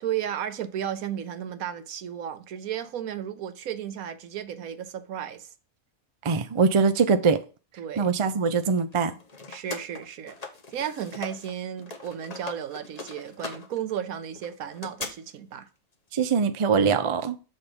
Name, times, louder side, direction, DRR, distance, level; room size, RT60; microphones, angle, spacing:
voice 1, 0.0-5.5 7.8-8.1 9.5-10.3 10.7-15.7, right 9 dB, 80° right, 1.3 m, -34 dB
voice 2, 6.2-7.4 8.0-9.1 16.1-17.4, right 5 dB, 40° right, 0.4 m, -22 dB
sound 1, 8.9-11.5 11.8-15.1, left 3 dB, 30° left, 1.1 m, -40 dB
7.0 x 4.2 x 5.1 m
omnidirectional pair, 1.5 m